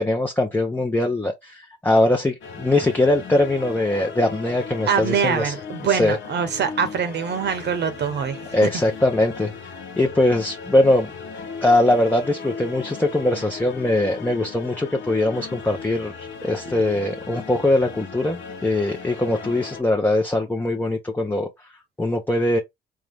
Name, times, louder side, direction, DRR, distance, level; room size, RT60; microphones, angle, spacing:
voice 1, 0.0-5.5 5.8-6.2 8.5-9.5 10.0-11.1 11.6-21.5 22.0-22.6, left 1 dB, 10° left, 0.8 m, -21 dB
sound 1, 2.4-19.8, left 5 dB, 75° left, 1.0 m, -37 dB
voice 2, 4.9-8.4, right 7 dB, 60° right, 0.9 m, -24 dB
3.7 x 3.1 x 3.5 m
cardioid pair, 90°, 20 cm